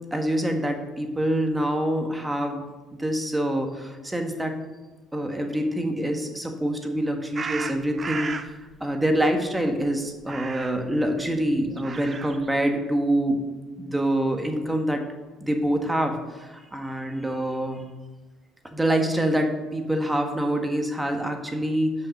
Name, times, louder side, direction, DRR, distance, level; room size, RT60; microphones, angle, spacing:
voice 1, 0.1-2.6 3.0-4.5 5.1-8.5 8.8-13.4 13.8-15.0 15.4-17.8 18.6-21.9, right 1 dB, 10° right, 4 dB, 1.6 m, -25 dB
sound 1, 7.4-8.5 10.2-10.9 11.7-12.5, right 4 dB, 35° right, 0.6 m, -34 dB
8.0 x 5.7 x 6.6 m, 1.2 s
supercardioid pair, 70°, 0 cm